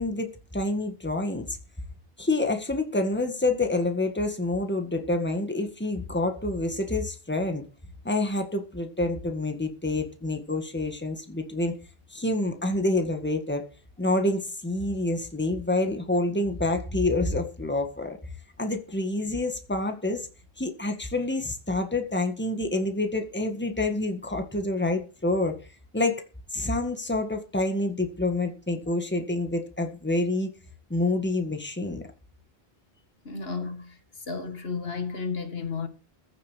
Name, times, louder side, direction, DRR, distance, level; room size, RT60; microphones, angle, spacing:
voice 1, 0.0-1.6 2.2-7.6 8.0-11.8 12.1-13.7 14.0-18.2 18.6-20.3 20.6-25.6 25.9-26.2 26.5-30.5 30.9-32.1, left 2 dB, 10° left, 1.9 m, -27 dB
voice 2, 33.3-34.0 34.3-35.9, left 5 dB, 75° left, 2.2 m, -32 dB
15.5 x 7.5 x 6.5 m
omnidirectional pair, 1.0 m